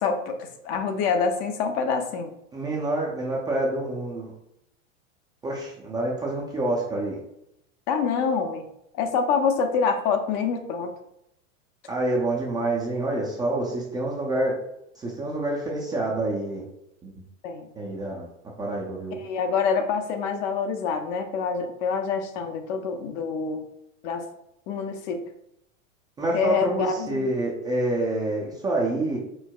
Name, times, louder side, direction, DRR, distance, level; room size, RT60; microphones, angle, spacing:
voice 1, 0.0-2.3 7.9-8.7 8.9-10.9 17.4-17.7 19.2-23.7 24.0-24.3 24.7-25.2 26.3-27.3, left 5 dB, 45° left, 6 dB, 0.6 m, -26 dB
voice 2, 2.5-4.3 5.4-7.2 11.9-14.6 15.0-16.7 17.0-17.1 17.8-18.3 18.6-19.2 26.2-29.2, right 2 dB, 10° right, -5 dB, 0.4 m, -27 dB
4.6 x 4.1 x 2.2 m, 0.79 s
hypercardioid pair, 125°, 40 cm